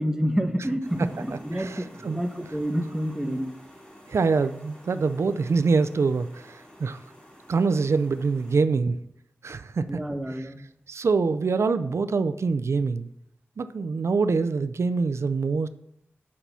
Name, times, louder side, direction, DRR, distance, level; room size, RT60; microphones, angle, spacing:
voice 1, 0.0-3.5 9.9-10.6, equal, 10° right, 6 dB, 1.2 m, -28 dB
sound 1, 0.8-8.6, equal, 20° left, 2.8 m, -50 dB
voice 2, 1.5-2.2 4.1-7.0 7.5-9.0 9.4-10.0 10.3-10.4 10.9-13.1 13.6-15.7, right 4 dB, 80° right, 12 dB, 0.5 m, -25 dB
8.5 x 5.7 x 6.8 m, 0.74 s
wide cardioid pair, 80°, 5 cm